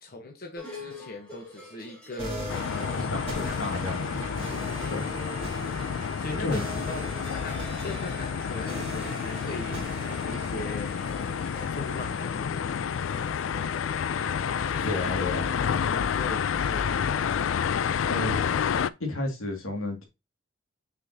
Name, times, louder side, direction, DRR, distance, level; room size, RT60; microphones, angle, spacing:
voice 1, 0.0-3.8 4.7-7.1 7.4-11.4 11.7-12.8 13.0-14.0 14.7-17.0, left 2 dB, 45° left, 1.0 m, -40 dB
sound 1, 0.5-12.0, left 1 dB, 5° left, 3.2 m, -47 dB
sound 2, 2.2-13.2, right 1 dB, 30° right, 2.7 m, -40 dB
sound 3, 2.5-18.9, left 7 dB, 70° left, 0.4 m, -29 dB
voice 2, 3.1-4.0 4.9-5.0 6.4-6.8 14.8-15.5 18.1-18.4 19.0-20.1, left 2 dB, 85° left, 2.2 m, -31 dB
6.5 x 5.5 x 2.8 m
head